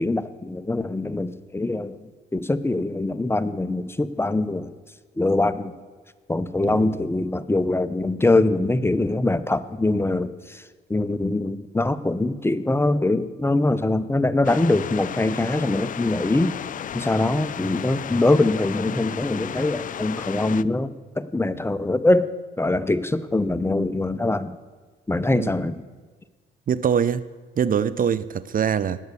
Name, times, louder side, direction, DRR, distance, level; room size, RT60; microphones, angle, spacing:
voice 1, 0.0-4.7 5.2-5.7 6.3-10.6 10.9-16.6 16.9-22.3 22.6-24.6 25.1-25.8, left 2 dB, 10° left, 0.7 m, -23 dB
sound 1, 14.4-20.6, left 9 dB, 40° left, 0.4 m, -34 dB
voice 2, 26.7-27.2 27.6-29.0, right 8 dB, 45° right, 0.6 m, -23 dB
19.0 x 7.9 x 7.0 m
cardioid pair, 90°, 20 cm